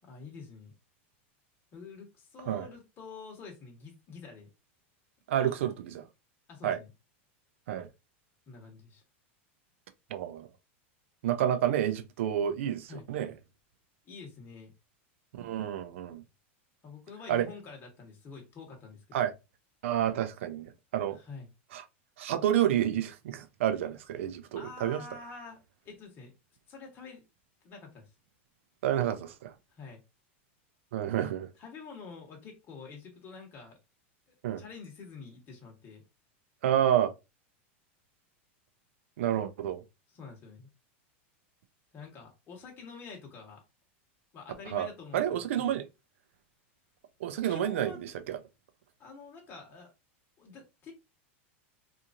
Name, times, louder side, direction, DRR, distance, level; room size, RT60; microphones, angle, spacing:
voice 1, 0.1-0.7 1.7-4.5 5.4-5.7 6.5-6.9 8.5-9.0 12.9-13.1 14.0-14.7 16.8-19.3 21.1-21.5 24.5-26.3 26.7-27.2 27.6-28.0 29.7-30.0 31.6-33.8 34.3-36.0 40.1-40.7 41.9-43.6 44.3-45.8 47.5-48.0 49.0-49.9 50.4-50.9, left 4 dB, 30° left, 1.2 m, -47 dB
voice 2, 5.3-6.1 6.6-6.8 7.7-7.9 10.1-10.5 11.2-13.3 15.3-16.2 17.3-17.5 19.1-19.3 19.8-21.2 21.7-21.8 22.2-25.0 28.8-29.5 30.9-31.5 34.4-34.6 36.6-37.1 39.2-39.8 44.7-44.9 45.1-45.8 47.2-48.4, right 10 dB, 75° right, 0.5 m, -29 dB
2.8 x 2.5 x 2.5 m
supercardioid pair, 130°, 7 cm